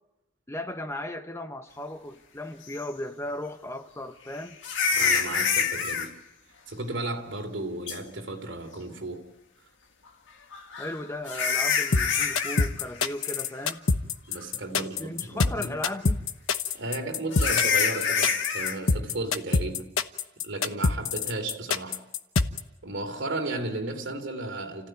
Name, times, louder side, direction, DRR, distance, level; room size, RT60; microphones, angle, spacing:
voice 1, 0.5-4.6 10.8-13.9 14.8-16.2, left 1 dB, 15° left, 0.9 m, -36 dB
sound 1, 2.8-2.9 4.6-6.1 7.9-8.0 10.5-12.7 13.0-13.3 13.7-13.8 14.4-14.5 17.3-18.8, left 6 dB, 65° left, 2.0 m, -26 dB
voice 2, 4.9-6.1 6.7-9.2 14.3-15.7 16.7-19.9 20.4-22.0 22.8-24.9, right 2 dB, 60° right, 3.2 m, -34 dB
sound 2, 11.7-22.6, left 4 dB, 90° left, 1.1 m, -25 dB
29.5 x 15.5 x 9.3 m
head